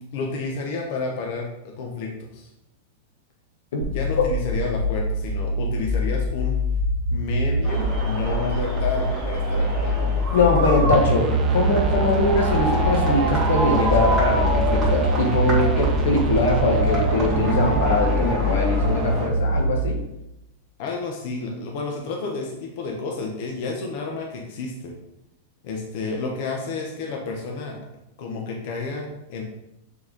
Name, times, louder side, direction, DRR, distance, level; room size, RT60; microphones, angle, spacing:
voice 1, 0.1-2.5 3.9-6.6 7.1-10.4 20.8-24.9 25.6-27.8 28.2-29.4, left 3 dB, 55° left, 0 dB, 1.2 m, -30 dB
sound 1, 3.8-19.8, left 1 dB, 90° right, 1.1 m, -24 dB
sound 2, 7.6-19.3, right 1 dB, 15° right, 2.1 m, -28 dB
voice 2, 10.3-20.0, left 2 dB, 75° left, 2 dB, 1.5 m, -22 dB
sound 3, 10.9-18.6, right 10 dB, 30° right, 0.3 m, -28 dB
6.6 x 4.6 x 3.7 m, 0.86 s
supercardioid pair, 145°, 0 cm